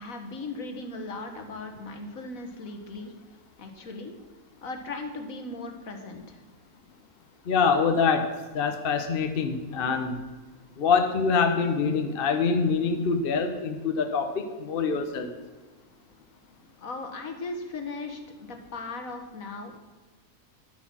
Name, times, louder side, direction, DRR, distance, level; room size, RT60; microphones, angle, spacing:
voice 1, 0.0-3.1 3.6-4.1 4.6-6.4 16.8-19.8, left 3 dB, 60° left, 5 dB, 1.7 m, -37 dB
voice 2, 7.5-10.2 10.8-15.3, left 5 dB, 45° left, 6 dB, 0.9 m, -25 dB
10.5 x 8.2 x 6.0 m, 1.3 s
omnidirectional pair, 1.6 m